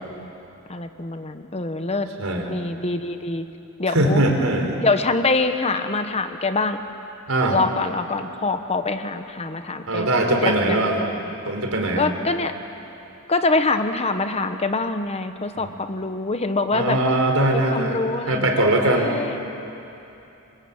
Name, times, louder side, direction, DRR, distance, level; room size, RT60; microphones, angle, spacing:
voice 1, 0.7-2.1 2.5-3.5 3.8-4.2 4.8-6.8 7.5-10.1 10.4-10.8 12.0-12.5 13.3-17.0 17.5-18.5 18.8-19.4, left 3 dB, 30° left, 8 dB, 1.1 m, -24 dB
voice 2, 2.2-2.5 3.9-4.8 7.3-7.6 9.9-11.0 11.5-12.1 15.6-15.7 16.7-18.0 18.3-19.1, right 1 dB, 75° right, 3 dB, 4.3 m, -21 dB
27.5 x 23.5 x 8.8 m, 2.9 s
head